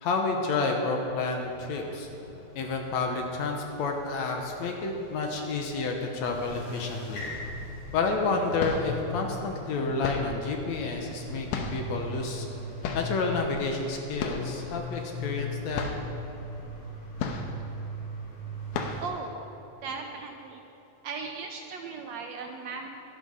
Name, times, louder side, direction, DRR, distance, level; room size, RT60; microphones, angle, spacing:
voice 1, 0.0-2.1 2.6-7.2 7.9-12.5 12.9-15.8, left 3 dB, 70° left, 2 dB, 2.1 m, -30 dB
sound 1, 1.4-19.1, left 1 dB, 55° left, 3.6 m, -40 dB
sound 2, 8.6-9.0 10.0-10.5 11.5-12.0 12.8-13.2 14.2-14.6 14.9-15.0 15.4-15.5 15.7-16.1 17.2-17.7 18.1-18.3 18.7-19.2, left 5 dB, 90° left, 2.5 m, -33 dB
voice 2, 19.0-19.3 19.8-20.6 21.0-22.9, right 4 dB, 75° right, 3 dB, 1.7 m, -37 dB
11.5 x 11.5 x 5.6 m, 2.9 s
omnidirectional pair, 3.6 m